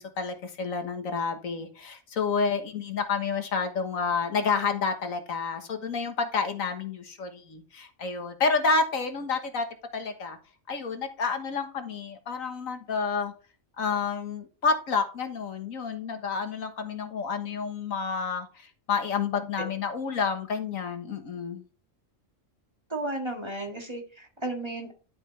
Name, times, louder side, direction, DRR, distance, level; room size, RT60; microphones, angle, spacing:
voice 1, 0.0-9.7 9.9-10.4 10.7-13.3 13.8-21.6, left 5 dB, 90° left, 7 dB, 1.7 m, -29 dB
voice 2, 22.9-24.9, right 2 dB, 20° right, 2 dB, 1.9 m, -34 dB
11.5 x 5.6 x 3.2 m, 0.36 s
omnidirectional pair, 1.4 m